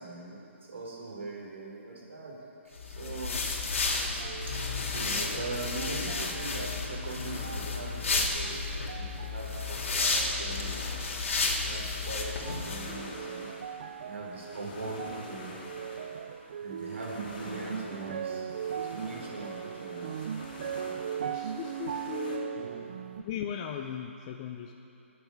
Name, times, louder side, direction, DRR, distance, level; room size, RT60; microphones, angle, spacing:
voice 1, 0.0-2.5 2.8-3.4 4.7-10.8 11.6-13.5 14.0-15.5 16.6-18.5 18.9-20.3 20.8-21.3 22.6-22.7, right 2 dB, 65° right, -3 dB, 4.9 m, -41 dB
sound 1, 2.8-13.0, left 3 dB, 75° left, 2.9 m, -32 dB
sound 2, 3.1-22.4, left 2 dB, 40° left, 3.3 m, -47 dB
sound 3, 4.2-5.2 5.8-6.8 7.4-8.1 8.4-9.8 10.1-11.0 11.6-12.1 12.4-23.2, right 8 dB, 35° right, 0.4 m, -39 dB
voice 2, 21.3-22.7 23.2-24.7, left 8 dB, 20° left, 3 dB, 0.5 m, -38 dB
28.5 x 10.0 x 4.9 m, 2.9 s
hypercardioid pair, 170°, 7 cm